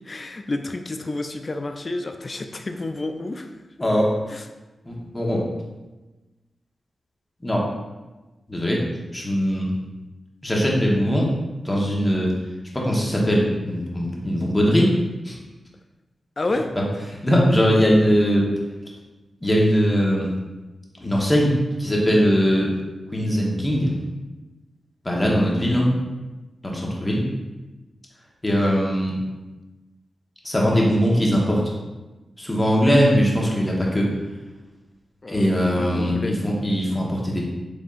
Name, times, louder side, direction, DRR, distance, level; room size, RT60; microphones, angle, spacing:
voice 1, 0.0-3.5 4.3-4.5 16.4-16.7 25.2-25.5 35.2-36.4, left 2 dB, 45° left, 6 dB, 0.3 m, -30 dB
voice 2, 3.8-4.1 4.8-5.4 7.4-7.7 8.5-8.8 9.1-9.7 10.4-11.3 11.6-12.3 12.7-14.9 15.2-15.4 17.2-18.5 19.4-20.3 21.0-21.5 21.8-22.7 23.1-23.9 25.0-25.9 26.6-27.3 28.4-29.1 30.4-31.6 32.4-34.1 35.3-37.4, equal, 25° left, -3 dB, 1.2 m, -20 dB
5.0 x 3.6 x 2.5 m, 1.1 s
cardioid pair, 40°, 0 cm